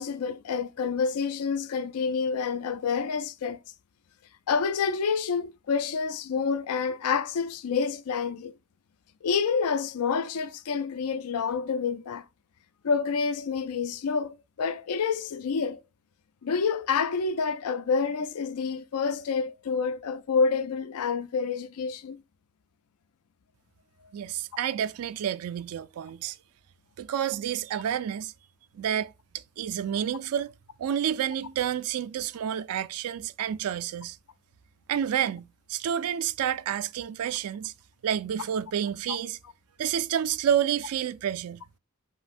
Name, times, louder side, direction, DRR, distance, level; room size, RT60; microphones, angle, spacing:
voice 1, 0.0-3.6 4.5-8.5 9.2-12.2 12.8-15.8 16.4-22.2 39.1-39.2, left 5 dB, 85° left, 0.4 m, -28 dB
voice 2, 24.1-26.4 27.0-28.3 28.7-30.5 30.8-34.2 34.9-37.7 38.0-39.4 39.8-41.6, right 9 dB, 80° right, 0.3 m, -29 dB
5.5 x 2.7 x 2.4 m
head